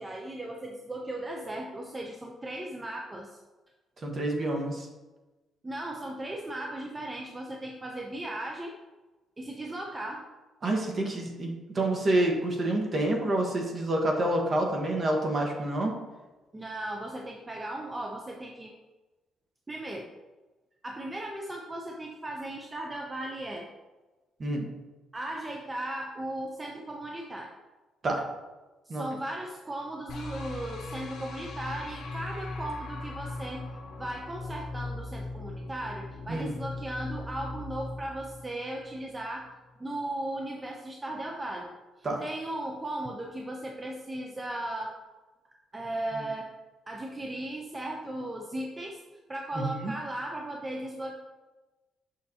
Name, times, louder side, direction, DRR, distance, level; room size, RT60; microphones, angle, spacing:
voice 1, 0.0-3.4 5.6-8.7 9.4-10.2 16.5-18.7 19.7-20.1 20.8-23.7 25.1-27.5 28.9-39.5 39.8-41.7 42.0-45.0 45.7-46.5 46.9-49.0 49.3-51.2, right 1 dB, 20° right, 1 dB, 0.7 m, -37 dB
voice 2, 4.0-4.9 10.6-16.0 24.4-24.7 28.0-28.2 28.9-29.0 36.3-36.5 42.0-42.2 46.2-46.3 49.5-49.9, right 1 dB, 45° right, 2 dB, 1.4 m, -28 dB
sound 1, 30.1-39.2, left 2 dB, 70° left, 1.0 m, -39 dB
6.7 x 6.1 x 2.9 m, 1.2 s
cardioid pair, 90°, 0 cm